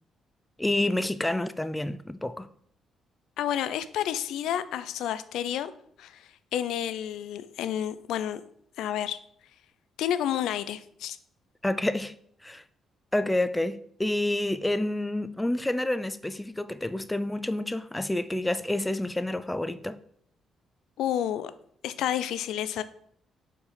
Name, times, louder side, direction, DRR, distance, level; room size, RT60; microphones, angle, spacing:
voice 1, 0.6-2.5 11.6-12.2 12.4-12.6 13.1-20.0, left 1 dB, 10° left, 0.3 m, -28 dB
voice 2, 3.4-5.7 6.0-8.4 8.8-9.2 10.0-11.2 21.0-21.5 21.8-22.8, left 10 dB, 85° left, 0.4 m, -30 dB
4.6 x 4.2 x 5.1 m
cardioid pair, 90°, 0 cm